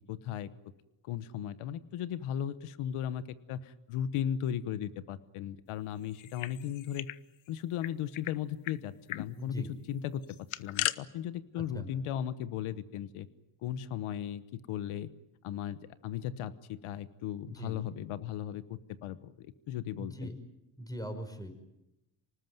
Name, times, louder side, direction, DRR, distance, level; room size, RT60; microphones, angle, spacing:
voice 1, 0.1-0.5 1.0-3.2 3.5-7.1 7.5-10.2 10.6-13.3 13.6-15.1 15.4-20.3, left 10 dB, 90° left, 15 dB, 1.2 m, -36 dB
sound 1, 6.1-7.2 7.5-7.6 7.8-8.3 8.6-8.8 9.1-9.3 10.2-11.0, left 14 dB, 70° left, 0.9 m, -36 dB
voice 2, 9.4-9.7 11.7-11.9 17.5-17.8 20.0-20.3 20.8-21.5, equal, 5° left, 7 dB, 5.5 m, -40 dB
26.0 x 19.5 x 9.3 m, 0.90 s
cardioid pair, 80°, 48 cm